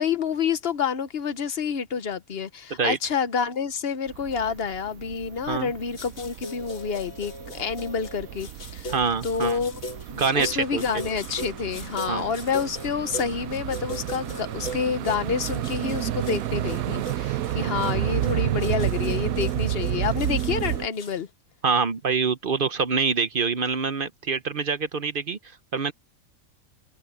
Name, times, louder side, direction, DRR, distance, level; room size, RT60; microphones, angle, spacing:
voice 1, 0.0-8.9 9.2-9.8 10.2-21.3, left 6 dB, 50° left, 1.1 m, -28 dB
sound 1, 4.1-20.9, right 13 dB, 75° right, 1.1 m, -31 dB
sound 2, 6.0-21.1, left 1 dB, 70° left, 2.4 m, -39 dB
voice 2, 8.9-9.6 10.1-10.8 12.1-12.3 17.5-17.7 18.0-18.1 21.6-25.4 25.7-25.9, right 5 dB, 45° right, 0.8 m, -25 dB
omnidirectional pair, 1.5 m